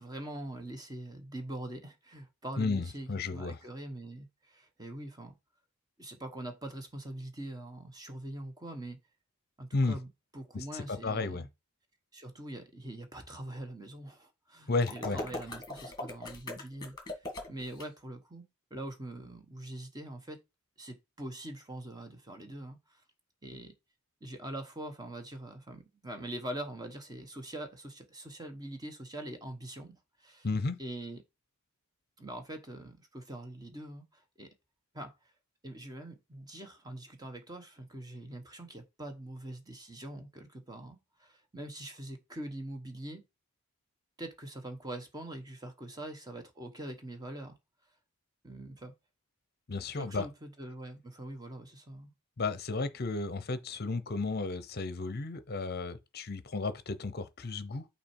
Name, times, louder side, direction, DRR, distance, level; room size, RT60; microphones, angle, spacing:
voice 1, 0.0-5.3 6.0-9.0 9.6-11.5 12.1-18.4 18.7-20.4 20.8-23.0 23.4-23.7 24.2-30.5 30.8-31.2 32.2-34.5 34.9-35.3 35.6-43.2 44.2-47.6 48.4-48.9 49.9-52.1, right 1 dB, 15° right, 1.1 m, -43 dB
voice 2, 2.6-3.6 9.7-10.0 10.5-11.5 14.7-15.2 30.4-30.8 49.7-50.3 52.4-57.9, left 3 dB, 45° left, 0.7 m, -33 dB
sound 1, 14.8-17.8, left 2 dB, 20° left, 1.6 m, -40 dB
6.0 x 4.3 x 4.5 m
head